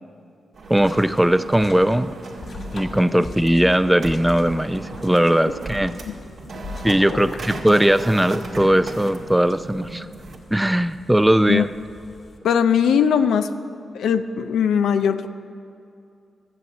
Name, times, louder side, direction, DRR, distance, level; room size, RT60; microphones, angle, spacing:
sound 1, 0.5-10.4, right 3 dB, 70° right, 1.9 m, -37 dB
sound 2, 0.7-12.4, left 2 dB, 60° left, 1.5 m, -40 dB
voice 1, 0.7-2.1 2.7-5.9 6.8-10.1 10.5-11.7, right 1 dB, 10° right, 12 dB, 0.5 m, -19 dB
voice 2, 12.4-13.5 13.9-15.3, left 7 dB, 90° left, 9 dB, 0.5 m, -20 dB
13.0 x 7.8 x 8.1 m, 2.5 s
cardioid pair, 55°, 0 cm